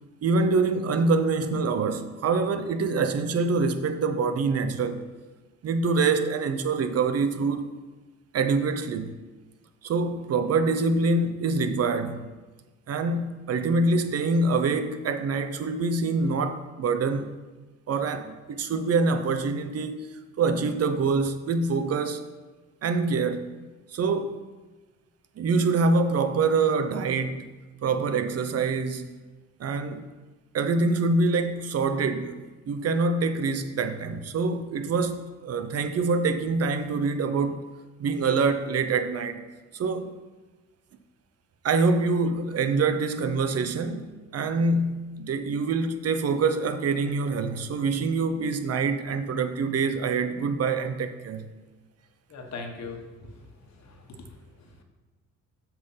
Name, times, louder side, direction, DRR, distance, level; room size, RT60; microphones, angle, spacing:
voice 1, 0.2-5.1 5.6-7.7 8.3-9.2 9.8-12.3 12.9-17.3 17.9-20.1 20.4-22.2 22.8-23.5 23.9-24.4 25.4-27.5 27.8-29.2 29.6-30.0 30.5-37.6 38.0-39.4 39.7-40.2 41.6-51.5, right 4 dB, 55° right, 0.8 m, -25 dB
voice 2, 52.3-53.4 53.7-54.3 54.7-54.8, left 4 dB, 60° left, 1.5 m, -40 dB
7.6 x 5.6 x 5.7 m
cardioid pair, 90°, 30 cm